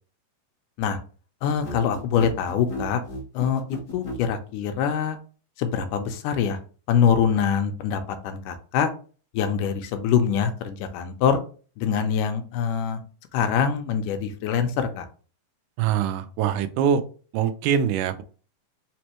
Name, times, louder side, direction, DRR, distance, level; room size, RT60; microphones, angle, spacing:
voice 1, 1.4-3.0 3.3-5.2 5.6-6.6 6.9-8.9 9.3-11.4 11.8-13.0 13.3-15.1, left 7 dB, 80° left, 7 dB, 2.1 m, -24 dB
sound 1, 1.4-4.2, left 1 dB, 45° left, 1.2 m, -35 dB
voice 2, 15.8-17.0 17.3-18.2, right 8 dB, 80° right, 10 dB, 2.1 m, -23 dB
5.2 x 3.2 x 2.9 m, 0.38 s
omnidirectional pair, 3.8 m